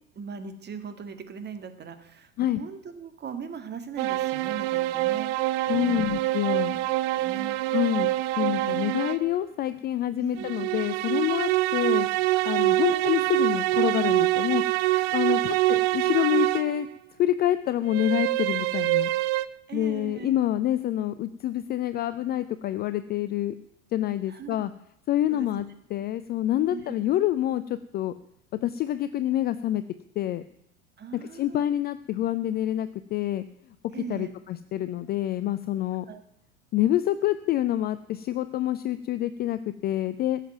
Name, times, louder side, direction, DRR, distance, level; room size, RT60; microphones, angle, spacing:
voice 1, 0.2-2.3 2.6-6.2 6.6-6.8 7.2-7.8 8.6-8.8 10.2-10.5 12.3-13.2 15.0-15.2 19.7-20.3 24.3-24.6 25.3-25.6 26.7-26.9 31.0-31.8 33.9-34.3 36.1-36.2, right 6 dB, 25° right, 8 dB, 1.9 m, -40 dB
sound 1, 4.0-9.3 10.4-16.9 17.9-19.5, right 17 dB, 45° right, 0.7 m, -25 dB
voice 2, 5.7-6.8 7.7-8.1 8.4-12.1 12.4-14.6 15.1-16.9 17.2-19.1 19.7-23.5 23.9-24.7 25.1-28.1 28.5-29.8 30.2-30.4 31.1-33.4 34.1-36.1 36.7-40.4, left 13 dB, 25° left, 13 dB, 0.5 m, -27 dB
15.5 x 7.5 x 9.1 m, 0.77 s
figure-of-eight pair, 80°, 41 cm